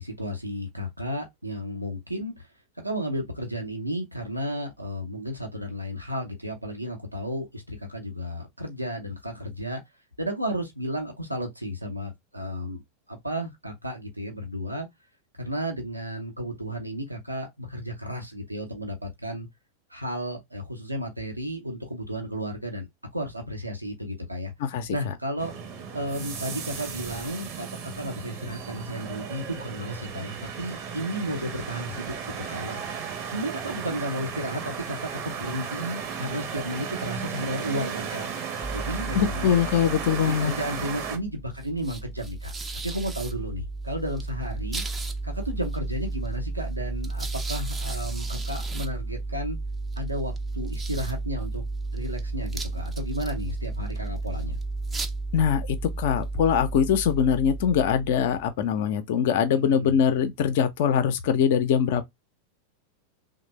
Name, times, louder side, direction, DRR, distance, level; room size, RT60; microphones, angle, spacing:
voice 1, 0.0-2.5 2.8-9.8 10.2-12.8 13.1-14.9 15.4-19.5 19.9-22.9 23.1-24.5 24.9-25.5 25.9-32.2 32.5-32.8 33.3-38.3 38.7-39.6 40.4-42.5 42.8-44.8 45.2-49.6 50.0-51.6 51.9-54.6 59.5-59.9, equal, 85° right, 0.7 m, -33 dB
voice 2, 24.6-25.1 39.1-40.6 55.3-62.1, left 8 dB, 50° left, 0.5 m, -23 dB
sound 1, 25.4-41.2, right 6 dB, 40° right, 0.8 m, -35 dB
sound 2, 38.6-58.5, right 3 dB, 15° right, 0.4 m, -33 dB
3.2 x 2.1 x 3.0 m
figure-of-eight pair, 90°, 0 cm